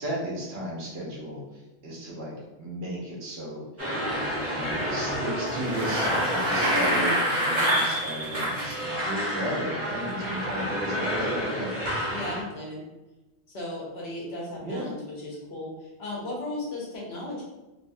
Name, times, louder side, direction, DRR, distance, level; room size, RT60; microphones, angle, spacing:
voice 1, 0.0-1.4 1.8-4.1 4.4-11.7 14.6-14.9, equal, 80° right, -4 dB, 1.1 m, -35 dB
sound 1, 3.8-12.4, equal, 15° right, 0.7 m, -30 dB
Bicycle, 5.4-8.7, right 1 dB, 45° right, 1.0 m, -27 dB
voice 2, 12.1-12.8 13.5-17.4, left 1 dB, 70° left, -4 dB, 1.1 m, -36 dB
3.0 x 2.1 x 2.6 m, 1.1 s
omnidirectional pair, 1.1 m